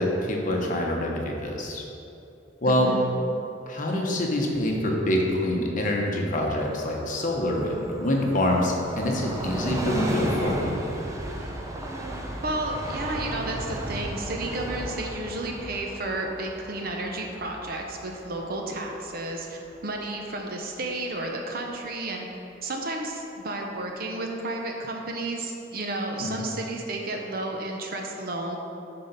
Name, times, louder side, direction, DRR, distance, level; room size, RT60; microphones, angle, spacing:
voice 1, 0.0-1.8 2.6-2.9 3.7-10.7 26.2-26.4, left 1 dB, 45° left, 0 dB, 1.0 m, -25 dB
voice 2, 2.6-3.2 12.4-22.3 22.6-28.6, right 2 dB, 50° right, 2 dB, 0.8 m, -32 dB
Train, 6.6-19.9 20.2-20.3, right 1 dB, 15° right, 0.6 m, -35 dB
8.7 x 3.9 x 5.5 m, 2.9 s
head